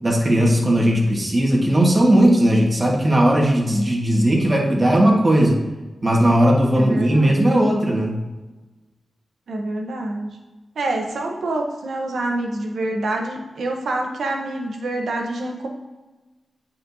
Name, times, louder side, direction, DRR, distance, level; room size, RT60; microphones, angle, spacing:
voice 1, 0.0-5.6 6.0-8.2, right 1 dB, 30° right, -1 dB, 1.6 m, -17 dB
voice 2, 6.8-7.4 9.5-10.3 10.7-15.7, right 2 dB, 85° right, 1 dB, 1.0 m, -26 dB
8.9 x 4.3 x 2.8 m, 1.2 s
cardioid pair, 75°, 0 cm